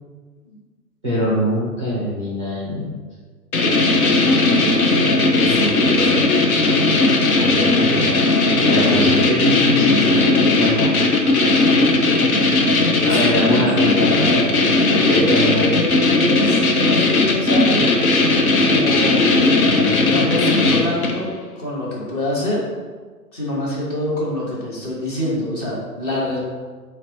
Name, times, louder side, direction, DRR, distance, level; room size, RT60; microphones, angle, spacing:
voice 1, 1.0-3.0 4.5-4.8 5.9-6.3 7.4-8.2 8.6-11.1 13.1-14.6 14.9-15.8, left 1 dB, 20° right, -8 dB, 0.4 m, -23 dB
sound 1, 3.5-21.3, left 2 dB, 60° left, 0.8 m, -17 dB
voice 2, 5.3-6.2 13.0-13.2 15.0-17.9 18.6-19.6 19.9-22.7 23.3-26.4, left 1 dB, 25° left, -5 dB, 0.8 m, -26 dB
4.0 x 2.1 x 4.4 m, 1.4 s
hypercardioid pair, 145°, 49 cm